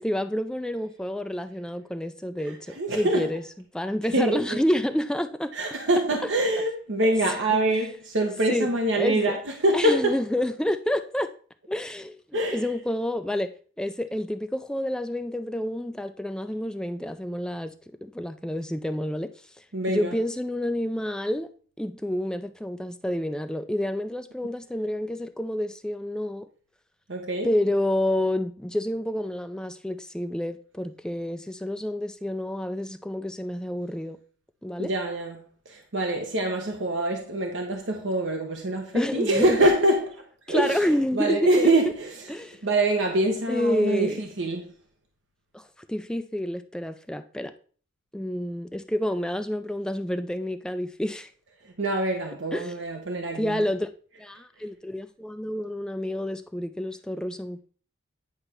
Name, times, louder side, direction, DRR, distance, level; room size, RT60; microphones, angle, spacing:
voice 1, 0.0-3.4 3.7-5.5 6.6-6.7 8.5-8.7 8.9-9.4 9.7-11.3 11.7-13.5 13.8-17.7 18.0-19.3 19.6-21.5 21.8-26.5 27.4-34.2 34.6-34.9 38.9-39.7 40.5-41.7 42.3-42.7 43.5-44.2 45.5-47.5 48.1-51.3 52.5-52.7 53.3-53.9 54.2-57.6, left 1 dB, 5° left, 0.3 m, -29 dB
voice 2, 2.8-3.3 4.1-4.6 5.5-9.4 9.6-10.1 12.3-12.6 19.7-20.1 27.1-27.5 34.8-40.2 40.5-40.9 41.1-42.3 42.6-44.7 51.8-53.7, right 1 dB, 70° right, 1.0 m, -25 dB
9.7 x 3.3 x 6.0 m
head